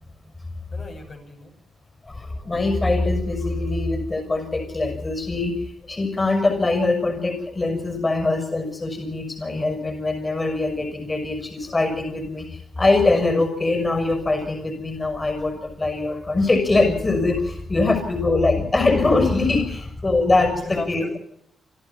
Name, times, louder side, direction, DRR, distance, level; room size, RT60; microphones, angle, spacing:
voice 1, 0.7-1.5 20.6-21.2, left 2 dB, 55° left, 1 dB, 6.0 m, -36 dB
voice 2, 2.1-5.5 5.9-21.1, left 2 dB, 30° left, 7 dB, 6.2 m, -22 dB
27.5 x 13.0 x 7.3 m, 0.72 s
supercardioid pair, 50°, 0 cm